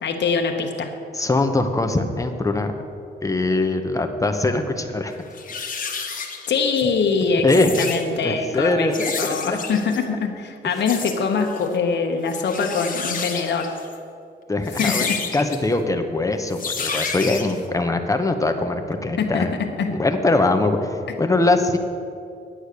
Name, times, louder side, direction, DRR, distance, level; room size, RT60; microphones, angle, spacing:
voice 1, 0.0-0.9 6.5-8.9 9.2-13.7 14.8-15.2 19.2-20.0, left 5 dB, 70° left, 3 dB, 1.2 m, -23 dB
voice 2, 1.1-2.7 3.2-5.2 7.4-7.7 8.2-9.6 14.5-15.1 15.3-19.5 19.9-21.8, left 2 dB, 15° left, 6 dB, 1.0 m, -22 dB
sound 1, 4.8-4.9 5.3-6.8 7.4-8.0 8.9-10.0 10.8-11.2 11.5-11.7 12.3-13.9 14.6-15.6 16.5-17.6, left 5 dB, 50° left, 1.3 m, -30 dB
9.9 x 8.9 x 6.7 m, 2.5 s
cardioid pair, 110°, 19 cm